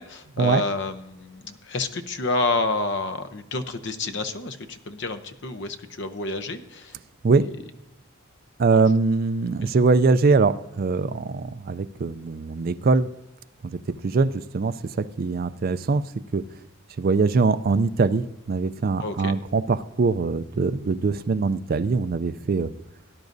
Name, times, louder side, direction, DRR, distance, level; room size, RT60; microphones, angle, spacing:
voice 1, 0.0-7.0 8.7-8.8 9.6-9.7 19.0-19.3, left 3 dB, 55° left, 9 dB, 0.8 m, -29 dB
voice 2, 8.6-13.1 13.7-16.0 16.3-16.4 17.0-22.7, right 4 dB, 40° right, 13 dB, 0.4 m, -22 dB
18.0 x 10.5 x 2.6 m, 0.94 s
head